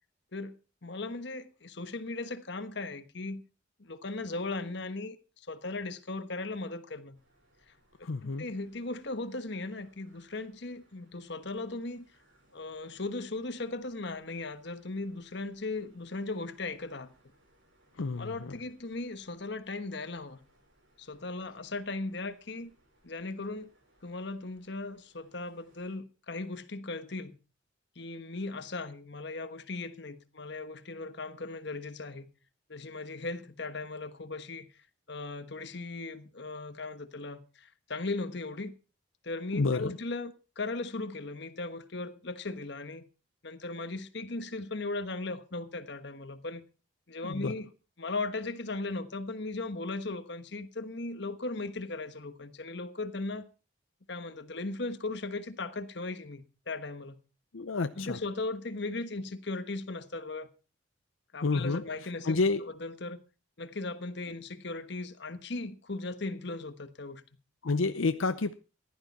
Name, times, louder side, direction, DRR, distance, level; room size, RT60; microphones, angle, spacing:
voice 1, 0.8-3.4 3.8-7.2 7.7-7.8 8.0-12.0 12.5-17.1 18.2-20.4 21.0-22.7 23.0-23.7 24.0-27.4 27.9-32.3 32.7-34.7 35.1-38.7 39.2-43.1 43.4-46.6 47.1-47.7 48.0-53.5 54.1-57.2 58.0-60.5 61.3-62.4 62.8-63.2 63.6-67.2, left 3 dB, 60° left, 1.3 m, -37 dB
sound 1, 7.1-26.0, right 1 dB, 70° right, 7.9 m, -68 dB
voice 2, 8.0-8.5 18.0-18.5 39.5-40.0 47.2-47.5 57.5-58.2 61.4-62.7 67.6-68.5, left 3 dB, 90° left, 0.7 m, -30 dB
15.5 x 11.5 x 4.2 m
head